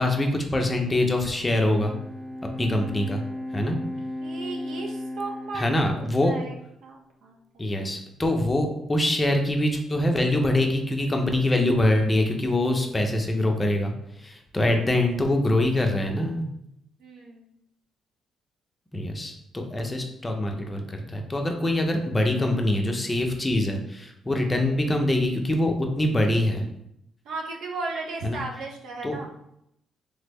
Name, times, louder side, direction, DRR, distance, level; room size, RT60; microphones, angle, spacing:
voice 1, 0.0-1.9 2.6-3.2 3.5-3.8 5.5-6.3 7.6-13.9 14.2-16.4 18.9-26.7 28.2-28.4 29.0-29.2, left 1 dB, 20° left, 3 dB, 0.5 m, -24 dB
Bowed string instrument, 1.3-6.7, left 1 dB, 40° right, 0.9 m, -36 dB
voice 2, 4.2-6.5 6.8-7.4 14.6-14.8 17.0-17.5 24.3-24.5 27.2-29.3, right 3 dB, 80° right, 1 dB, 0.6 m, -36 dB
3.3 x 2.0 x 3.4 m, 0.78 s
cardioid pair, 90°, 0 cm